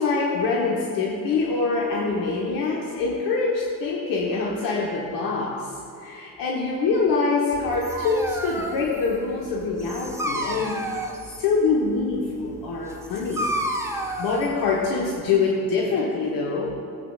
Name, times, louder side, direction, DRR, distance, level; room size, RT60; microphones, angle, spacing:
voice 1, 0.0-10.8 11.4-13.8 14.2-16.7, left 4 dB, 45° left, -2 dB, 1.2 m, -25 dB
Dog, 7.5-15.4, right 1 dB, 5° right, 0.7 m, -32 dB
17.5 x 8.2 x 2.4 m, 2.5 s
figure-of-eight pair, 65°, 49 cm